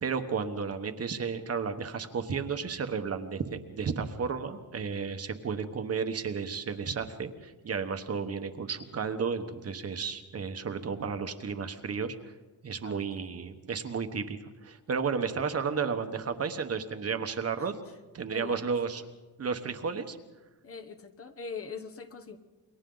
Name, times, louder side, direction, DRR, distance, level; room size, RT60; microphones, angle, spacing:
voice 1, 0.0-12.3 12.6-17.8 18.1-19.0 19.4-20.2, right 5 dB, 40° right, 7 dB, 1.2 m, -33 dB
voice 2, 12.8-13.3 17.6-17.7 18.3-18.7 20.6-22.4, left 5 dB, 40° left, 8 dB, 1.1 m, -42 dB
29.0 x 23.0 x 3.9 m, 1.2 s
wide cardioid pair, 170°, 37 cm